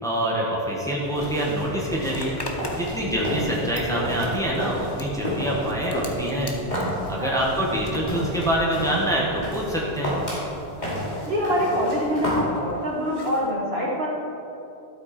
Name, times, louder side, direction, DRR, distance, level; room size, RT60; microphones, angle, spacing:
voice 1, 0.0-2.4 2.7-6.5 7.1-10.1, right 1 dB, 5° left, -5 dB, 1.7 m, -25 dB
sound 1, 1.0-12.4, equal, 45° left, 2.9 m, -32 dB
sound 2, 1.1-10.6, left 2 dB, 70° left, 1.3 m, -41 dB
Zipper (clothing), 2.1-8.3 8.5-13.5, left 1 dB, 25° left, 0.9 m, -41 dB
voice 2, 3.0-3.4 7.2-7.7 11.3-14.1, equal, 75° right, -4 dB, 2.1 m, -26 dB
12.0 x 8.0 x 4.5 m, 2.8 s
omnidirectional pair, 1.1 m